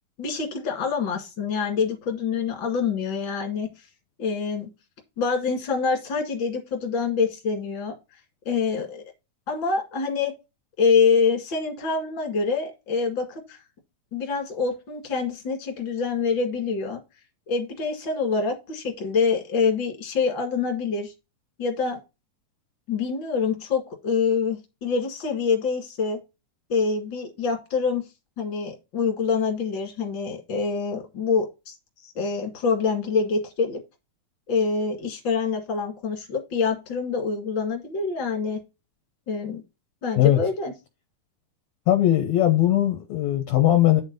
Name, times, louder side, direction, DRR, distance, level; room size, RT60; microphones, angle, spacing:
voice 1, 0.2-3.7 4.2-4.7 5.2-7.9 8.5-9.0 9.5-10.3 10.8-13.6 14.1-17.0 17.5-21.1 21.6-22.0 22.9-26.2 26.7-28.0 28.4-31.7 32.0-33.8 34.5-38.6 39.3-39.6 40.0-40.7, left 5 dB, 40° left, 2.2 m, -25 dB
voice 2, 41.9-44.0, left 13 dB, 70° left, 1.9 m, -19 dB
9.4 x 4.1 x 5.3 m
omnidirectional pair, 4.0 m